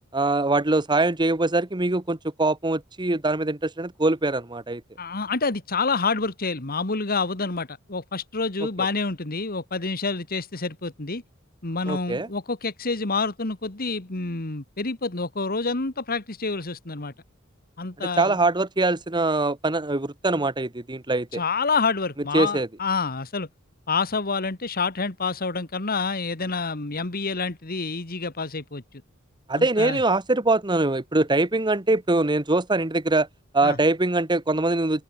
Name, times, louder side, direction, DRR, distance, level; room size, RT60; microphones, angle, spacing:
voice 1, 0.1-4.8 11.9-12.3 18.2-21.4 22.3-22.7 29.5-33.3 33.5-35.0, right 2 dB, 20° right, 1.3 m, -23 dB
voice 2, 5.0-11.2 11.6-17.1 17.8-18.4 21.3-23.5 23.9-28.8 29.6-30.0 33.6-33.8, left 4 dB, 45° left, 1.9 m, -28 dB
open air
head